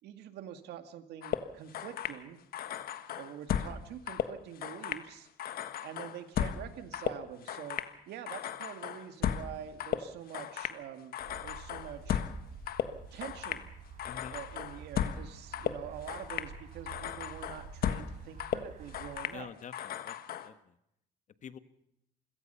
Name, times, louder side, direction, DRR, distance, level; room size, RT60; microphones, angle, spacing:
voice 1, 0.0-2.4 3.2-5.3 5.8-7.8 8.1-11.2 11.4-12.2 13.1-13.7 14.3-19.5, right 10 dB, 75° right, 8 dB, 2.2 m, -45 dB
sound 1, 1.2-2.2 2.5-3.8 4.1-5.1 5.4-7.9 8.3-9.5 9.8-10.8 11.1-12.4 12.7-13.7 14.0-15.3 15.5-16.5 16.9-18.1 18.4-19.4 19.7-20.5, left 9 dB, 60° left, 1.5 m, -36 dB
sound 2, 11.2-19.2, right 5 dB, 50° right, 5.5 m, -49 dB
voice 2, 14.0-14.4 19.3-20.7 21.4-21.6, left 8 dB, 45° left, 11 dB, 1.4 m, -47 dB
27.0 x 17.5 x 5.7 m, 0.77 s
cardioid pair, 110°, 17 cm